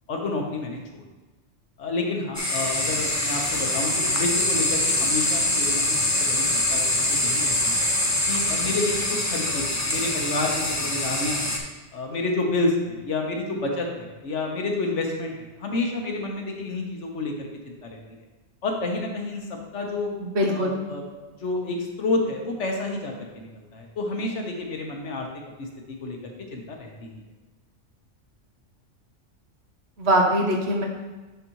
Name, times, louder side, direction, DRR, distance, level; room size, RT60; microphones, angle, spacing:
voice 1, 0.1-1.0 1.8-7.9 8.3-11.5 11.9-15.3 15.6-18.0 18.6-19.4 19.7-20.1 20.5-21.0 21.4-25.3 25.6-25.7 26.0-27.1, left 2 dB, 75° left, 1 dB, 1.4 m, -29 dB
sound 1, 2.3-11.6, left 1 dB, 20° left, 0.6 m, -24 dB
voice 2, 20.2-20.8 30.0-30.9, equal, 60° right, 0 dB, 1.3 m, -22 dB
10.5 x 4.2 x 3.0 m, 1.2 s
omnidirectional pair, 1.2 m